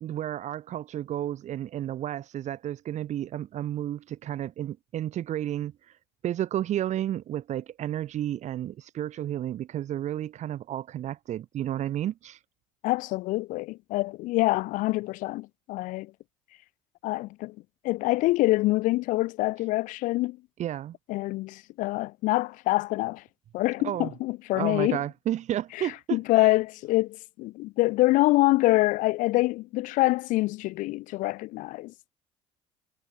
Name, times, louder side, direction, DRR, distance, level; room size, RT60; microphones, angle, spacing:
voice 1, 0.0-5.7 6.2-12.4 20.6-21.0 23.8-24.1 24.5-26.5, right 11 dB, 50° right, 2.0 m, -32 dB
voice 2, 12.8-16.1 17.0-17.6 17.8-20.4 21.1-23.2 23.5-25.0 25.8-32.1, left 19 dB, 60° left, 0.9 m, -25 dB
figure-of-eight pair, 55°, 15 cm